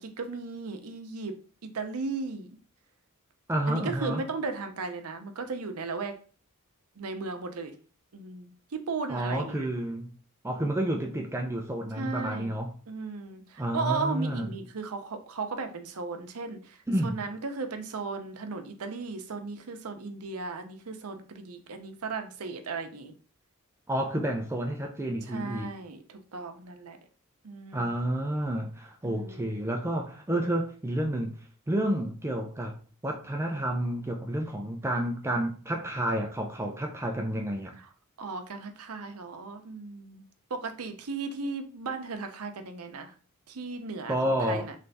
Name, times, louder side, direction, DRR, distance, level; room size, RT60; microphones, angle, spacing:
voice 1, 0.0-2.6 3.7-6.1 7.0-7.7 8.1-9.7 11.9-12.6 12.9-23.1 25.3-27.0 27.4-27.9 29.0-29.5 37.8-37.9 38.2-43.1 43.5-44.7, right 4 dB, 75° right, 0.7 m, -36 dB
voice 2, 3.5-4.2 9.1-10.1 10.4-12.7 13.6-14.5 16.9-17.1 23.9-25.7 27.7-31.3 31.7-32.8 33.0-37.8 44.1-44.7, right 1 dB, 10° right, 0.4 m, -30 dB
3.3 x 3.3 x 4.0 m
head